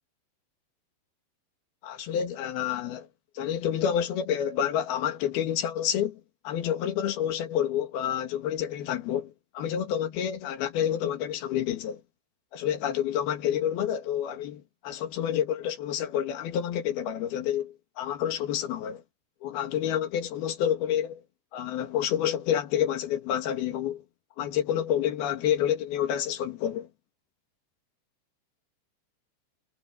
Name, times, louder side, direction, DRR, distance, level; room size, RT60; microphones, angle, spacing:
voice 1, 1.8-3.1 3.4-12.0 12.5-19.0 19.4-21.2 21.5-24.0 24.4-26.9, left 10 dB, 70° left, 3.6 m, -29 dB
omnidirectional pair, 4.7 m